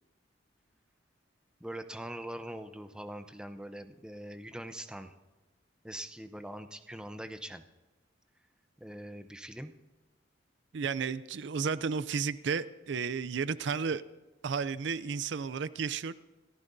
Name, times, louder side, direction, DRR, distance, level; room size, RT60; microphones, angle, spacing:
voice 1, 1.6-5.1 5.8-7.6 8.8-9.7, right 1 dB, 5° right, 8 dB, 0.7 m, -42 dB
voice 2, 10.7-14.0 14.4-16.1, right 5 dB, 65° right, 16 dB, 0.5 m, -33 dB
28.0 x 14.5 x 2.7 m, 1.2 s
head